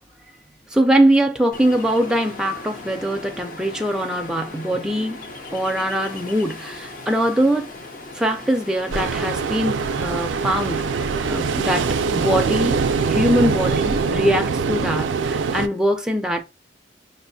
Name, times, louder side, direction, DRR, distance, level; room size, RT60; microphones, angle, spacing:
voice 1, 0.7-5.3 5.5-7.7 8.1-11.0 11.3-16.4, right 1 dB, 5° right, 0.4 m, -22 dB
Ocean, 1.5-14.1, left 2 dB, 45° left, 0.6 m, -38 dB
Ocean 2, 8.9-15.7, right 5 dB, 80° right, 0.3 m, -23 dB
5.5 x 2.5 x 2.6 m
head